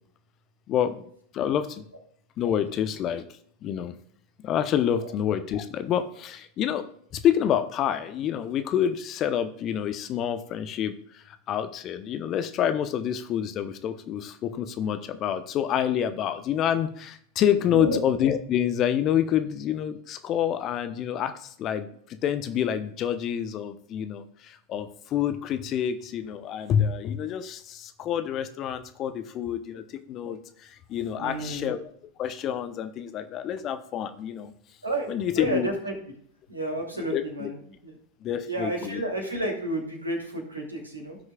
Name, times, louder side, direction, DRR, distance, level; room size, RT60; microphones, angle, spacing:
voice 1, 1.3-1.8 2.4-3.2 3.6-3.9 4.4-6.8 7.2-31.9 32.2-34.5 35.1-35.7 37.1-37.5 38.2-39.0, left 9 dB, 35° left, 10 dB, 0.8 m, -28 dB
voice 2, 17.7-18.0 31.2-31.7 34.8-35.9 36.5-38.0 38.5-41.2, right 1 dB, 80° right, 1 dB, 2.6 m, -31 dB
16.5 x 6.4 x 2.3 m, 0.65 s
figure-of-eight pair, 90°, 0 cm